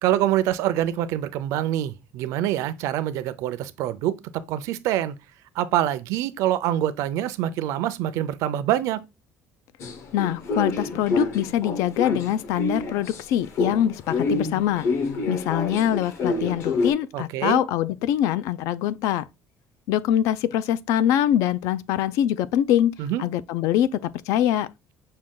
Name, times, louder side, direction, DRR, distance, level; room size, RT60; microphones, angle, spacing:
voice 1, 0.0-5.1 5.6-9.0 17.1-17.6 23.0-23.2, right 12 dB, 75° right, 0.5 m, -25 dB
sound 1, 9.8-13.2 13.5-16.9, left 3 dB, 55° left, 0.8 m, -27 dB
voice 2, 10.1-14.9 15.3-19.2 19.9-24.7, left 11 dB, 85° left, 0.4 m, -23 dB
6.2 x 2.3 x 3.6 m
cardioid pair, 180°, 5 cm